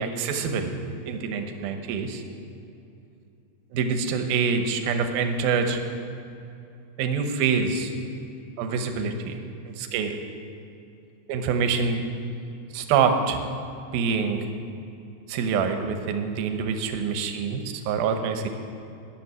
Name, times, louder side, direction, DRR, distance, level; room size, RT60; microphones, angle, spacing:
voice 1, 0.0-2.2 3.7-5.8 7.0-7.9 8.6-9.4 9.7-10.2 11.3-12.0 12.7-13.4 13.9-14.4 15.3-18.5, right 5 dB, 80° right, 6 dB, 2.2 m, -26 dB
13.5 x 6.8 x 9.6 m, 2.7 s
omnidirectional pair, 5.4 m